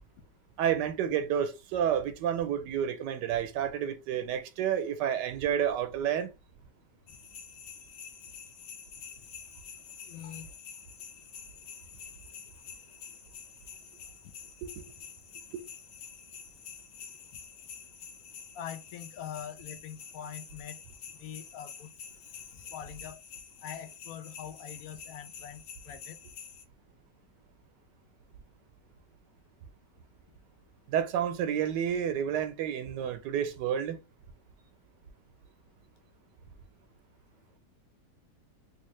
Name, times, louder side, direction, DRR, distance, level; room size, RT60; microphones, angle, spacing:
voice 1, 0.6-6.3 14.6-14.8 15.5-15.6 30.9-34.0, right 9 dB, 85° right, 1.2 m, -30 dB
sound 1, 7.1-26.6, left 7 dB, 85° left, 1.4 m, -48 dB
voice 2, 10.1-10.5 14.2-14.3 17.3-17.4 18.5-20.8 21.1-21.9 22.5-23.2 23.6-26.2, left 9 dB, 65° left, 0.9 m, -44 dB
3.4 x 2.6 x 3.1 m
omnidirectional pair, 1.9 m